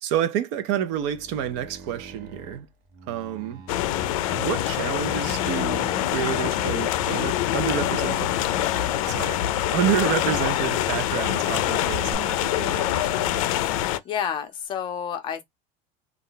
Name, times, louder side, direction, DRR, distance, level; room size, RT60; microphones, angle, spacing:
voice 1, 0.0-2.7 3.1-3.6 4.3-8.3 9.1-13.4, right 9 dB, 60° right, 0.5 m, -29 dB
sound 1, 0.9-4.5 4.9-7.1 7.5-8.8 9.1-10.4 10.8-11.9 12.5-13.4 13.6-14.8, right 4 dB, 85° right, 1.0 m, -45 dB
sound 2, 3.7-14.0, left 13 dB, 85° left, 0.4 m, -25 dB
sound 3, 7.4-12.1, right 2 dB, 20° right, 0.7 m, -46 dB
voice 2, 14.0-15.4, left 8 dB, 30° left, 0.5 m, -29 dB
2.4 x 2.1 x 3.8 m
cardioid pair, 165°, 17 cm